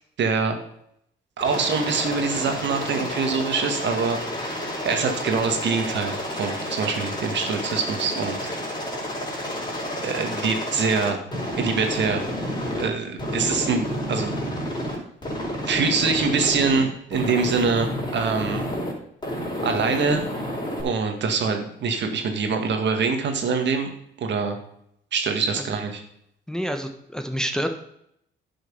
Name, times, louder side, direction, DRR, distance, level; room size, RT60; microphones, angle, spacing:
voice 1, 0.2-0.6 1.4-8.4 10.0-11.2 11.6-12.2 12.8-14.6 15.6-18.7 19.6-20.3 20.8-23.9 24.2-24.6 25.1-26.0, right 5 dB, 65° right, 5 dB, 1.9 m, -24 dB
Aircraft, 1.4-12.9 13.2-15.0 15.2-16.8 17.1-18.9 19.2-20.8, equal, 20° left, 4.9 m, -30 dB
voice 2, 26.5-27.7, equal, 5° left, 5 dB, 1.2 m, -28 dB
11.0 x 6.4 x 5.5 m, 0.73 s
cardioid pair, 90°, 20 cm